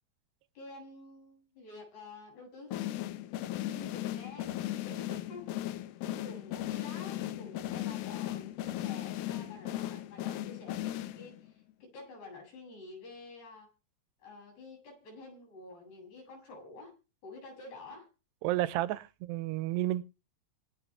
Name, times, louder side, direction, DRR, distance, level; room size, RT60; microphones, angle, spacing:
voice 1, 0.5-2.9 3.5-5.5 6.0-13.7 14.2-16.9 17.2-18.1 18.7-18.8, left 3 dB, 70° left, 9.9 m, -49 dB
sound 1, 2.7-11.5, left 14 dB, 85° left, 3.1 m, -37 dB
voice 2, 18.4-20.0, right 16 dB, 85° right, 2.9 m, -31 dB
25.5 x 8.7 x 3.5 m
omnidirectional pair, 4.8 m